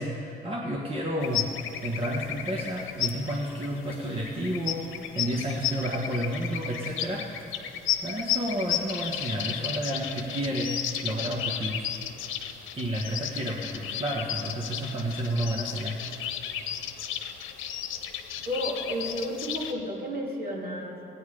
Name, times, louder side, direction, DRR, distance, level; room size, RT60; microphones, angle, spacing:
voice 1, 0.0-1.4 1.8-7.2 8.0-10.7 11.0-11.9 12.7-16.0, right 1 dB, 30° right, -2 dB, 1.4 m, -31 dB
sound 1, 1.2-19.7, left 10 dB, 85° left, 0.9 m, -34 dB
voice 2, 18.5-21.1, equal, 50° right, -3 dB, 2.9 m, -32 dB
16.0 x 9.3 x 5.0 m, 2.9 s
cardioid pair, 90°, 20 cm